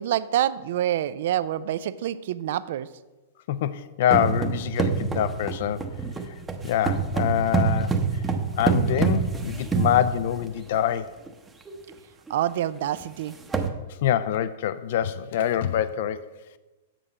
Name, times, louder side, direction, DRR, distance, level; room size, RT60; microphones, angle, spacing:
voice 1, 0.0-2.9 12.3-13.4, right 12 dB, 65° right, 16 dB, 0.4 m, -26 dB
voice 2, 3.5-6.0 6.3-6.4 6.6-8.2 8.6-11.2 14.0-16.3, left 10 dB, 60° left, 15 dB, 0.4 m, -25 dB
sound 1, 4.1-10.6 11.3-11.4 11.7-11.9 12.3-12.4 13.0-13.1 13.3-13.7, right 5 dB, 15° right, 0.7 m, -26 dB
7.5 x 6.7 x 5.0 m, 1.1 s
hypercardioid pair, 130°, 0 cm